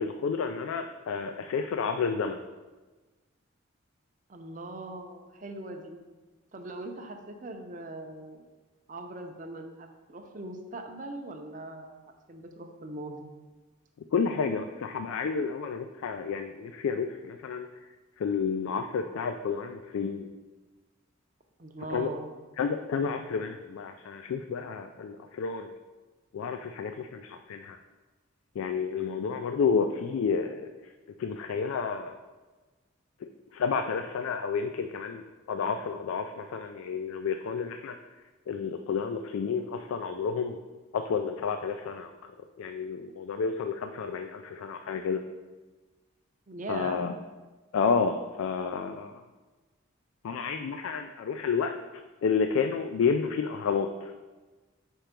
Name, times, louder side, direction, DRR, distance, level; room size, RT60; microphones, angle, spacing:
voice 1, 0.0-2.4 14.1-17.7 18.2-20.3 21.9-22.1 22.6-25.7 26.3-27.8 28.6-30.6 31.2-32.1 33.2-37.9 38.5-40.6 40.9-42.1 42.6-45.2 46.7-47.1 47.7-49.1 50.2-54.1, left 5 dB, 85° left, 7 dB, 0.3 m, -30 dB
voice 2, 4.3-6.0 6.5-8.5 8.9-12.0 12.3-13.3 21.6-22.3 46.5-47.0, right 2 dB, 40° right, 4 dB, 0.6 m, -40 dB
4.5 x 4.5 x 5.1 m, 1.3 s
head